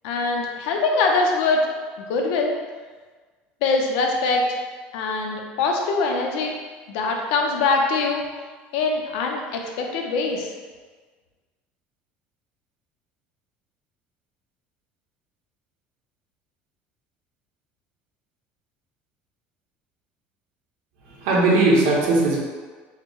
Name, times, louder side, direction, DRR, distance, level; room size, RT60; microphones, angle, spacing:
voice 1, 0.0-1.6 2.0-2.5 3.6-4.6 4.9-6.5 6.9-8.2 8.7-10.5, left 3 dB, 80° left, 1 dB, 0.7 m, -23 dB
voice 2, 21.1-22.4, right 2 dB, 90° right, -3 dB, 1.2 m, -18 dB
4.8 x 2.2 x 4.7 m, 1.4 s
cardioid pair, 180°, 4 cm